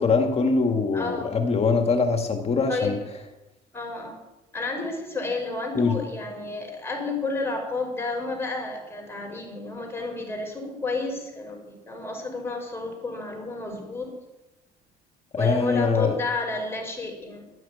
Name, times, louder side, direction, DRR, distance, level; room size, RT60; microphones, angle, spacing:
voice 1, 0.0-3.0 5.7-6.0 15.3-16.2, left 4 dB, 35° left, 5 dB, 1.9 m, -23 dB
voice 2, 0.9-1.3 2.7-2.9 3.7-4.2 4.5-14.1 15.4-17.5, left 3 dB, 15° left, 1 dB, 5.8 m, -31 dB
12.5 x 9.4 x 9.3 m, 1.0 s
cardioid pair, 110°, 17 cm